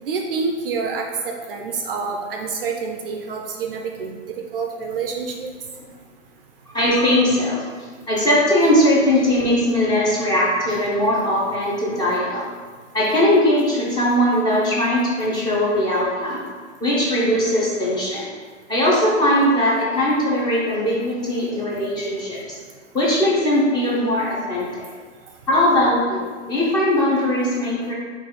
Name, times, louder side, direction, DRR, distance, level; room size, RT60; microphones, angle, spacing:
voice 1, 0.0-4.1 4.5-5.5, right 4 dB, 45° right, 3 dB, 0.4 m, -27 dB
voice 2, 6.7-12.5 12.9-16.4 16.8-18.3 18.7-22.6 22.9-24.9 25.5-27.9, left 1 dB, 10° left, -6 dB, 0.6 m, -20 dB
3.9 x 2.4 x 3.7 m, 1.5 s
figure-of-eight pair, 115°, 39 cm